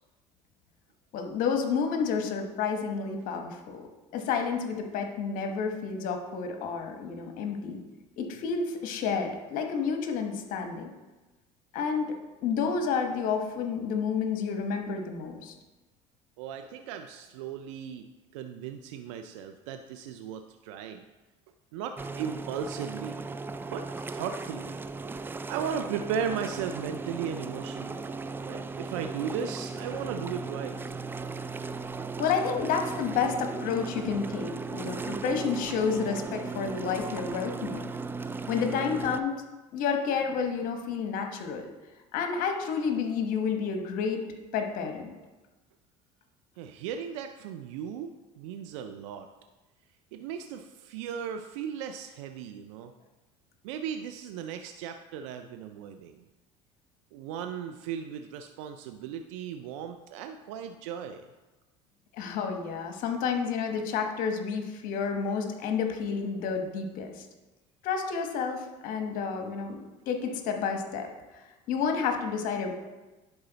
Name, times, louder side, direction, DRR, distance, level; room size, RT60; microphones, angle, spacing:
voice 1, 1.1-3.9 4.1-7.8 8.2-10.9 11.7-12.1 12.4-15.5 32.2-37.9 38.5-39.4 39.7-41.7 42.1-44.2 44.5-45.1 62.1-67.2 67.8-69.8 70.1-72.7, left 6 dB, 65° left, 4 dB, 1.1 m, -30 dB
voice 2, 16.4-18.1 18.3-21.0 21.7-23.2 23.7-23.9 24.1-24.8 25.5-28.1 28.5-30.8 46.6-49.3 50.1-52.9 53.6-56.2 57.1-61.3, right 8 dB, 90° right, 7 dB, 0.4 m, -36 dB
sound 1, 22.0-39.2, right 4 dB, 15° right, 0.3 m, -37 dB
10.5 x 4.1 x 3.9 m, 1.1 s
supercardioid pair, 95°, 15 cm